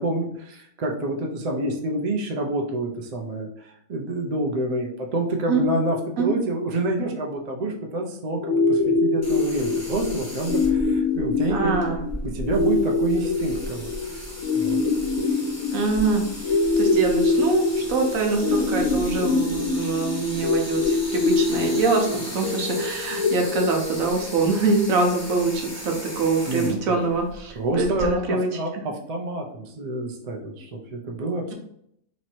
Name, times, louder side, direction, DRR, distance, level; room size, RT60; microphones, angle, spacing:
voice 1, 0.0-11.8 12.3-14.3 14.5-14.8 26.5-27.0 27.6-31.5, right 1 dB, 50° right, 1 dB, 0.4 m, -28 dB
sound 1, 8.4-24.4, left 3 dB, 70° left, 0.9 m, -24 dB
sound 2, 9.2-28.1, equal, 15° left, 0.7 m, -37 dB
voice 2, 11.5-12.0 15.7-28.5, right 3 dB, 70° right, 2 dB, 1.2 m, -24 dB
3.1 x 2.8 x 4.3 m, 0.72 s
omnidirectional pair, 1.5 m